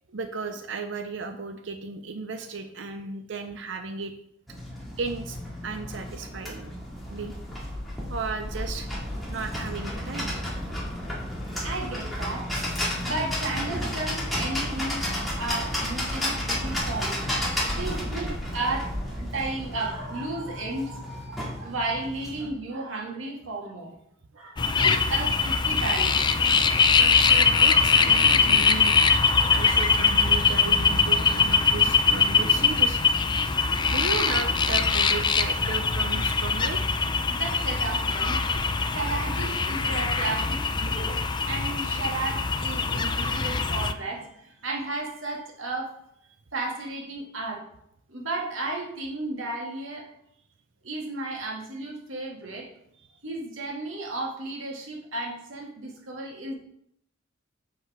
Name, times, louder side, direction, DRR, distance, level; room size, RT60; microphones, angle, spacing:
voice 1, 0.1-4.1 5.0-5.4 5.6-6.7 7.1-7.3 8.1-8.9 9.3-10.4 17.7-18.0 27.0-29.0 29.3-33.0 33.9-36.8, right 4 dB, 65° right, 6 dB, 0.6 m, -35 dB
sound 1, 4.5-22.5, left 1 dB, ahead, 2.2 m, -32 dB
voice 2, 11.6-15.0 15.4-17.2 17.8-23.9 24.3-26.4 31.0-31.3 36.5-36.6 37.3-38.5 38.9-45.9 46.5-47.6 48.1-50.1 50.8-52.7 53.2-56.5, right 2 dB, 90° right, 0 dB, 2.0 m, -34 dB
sound 2, 24.6-43.9, left 5 dB, 25° left, 0.4 m, -22 dB
7.8 x 5.5 x 4.9 m, 0.74 s
head